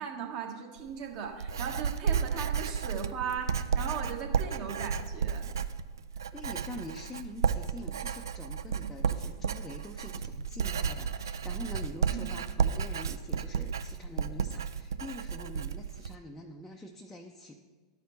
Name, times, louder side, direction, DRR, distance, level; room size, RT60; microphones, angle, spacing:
voice 1, 0.0-5.4 12.1-12.2, right 7 dB, 40° right, 1 dB, 1.2 m, -38 dB
Writing, 0.8-16.1, right 6 dB, 70° right, 0.3 m, -32 dB
voice 2, 6.3-17.5, left 1 dB, 10° left, 0 dB, 0.5 m, -45 dB
12.5 x 4.9 x 3.1 m, 1.4 s
figure-of-eight pair, 90°, 2 cm